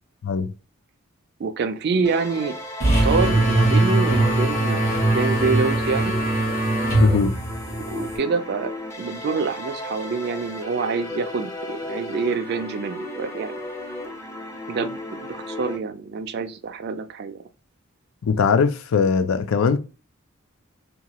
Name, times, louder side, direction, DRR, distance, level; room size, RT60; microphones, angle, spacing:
voice 1, 1.4-2.6 3.0-6.2 7.8-8.7 9.0-13.6 14.7-17.4, right 4 dB, 50° right, 0.4 m, -26 dB
sound 1, 2.0-15.8, left 1 dB, 15° left, 0.5 m, -35 dB
sound 2, 2.8-8.2, right 2 dB, 45° left, 1.3 m, -21 dB
voice 2, 7.0-7.3 18.2-19.8, left 5 dB, 80° left, 0.4 m, -20 dB
2.9 x 2.3 x 2.8 m
head